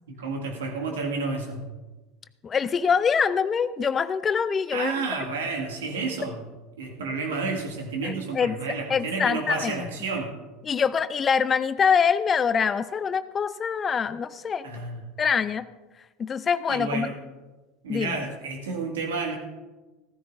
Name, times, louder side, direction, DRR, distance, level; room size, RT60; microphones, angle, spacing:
voice 1, 0.1-1.7 4.7-6.4 6.8-10.3 14.6-15.1 16.7-17.2 17.8-19.4, right 3 dB, 75° right, 2 dB, 2.0 m, -31 dB
voice 2, 2.4-4.9 8.0-8.6 8.9-9.9 10.7-14.7 15.2-15.6 16.2-17.1 17.9-18.2, left 6 dB, 30° left, 14 dB, 0.5 m, -24 dB
15.5 x 14.5 x 2.6 m, 1.2 s
hypercardioid pair, 75°, 0 cm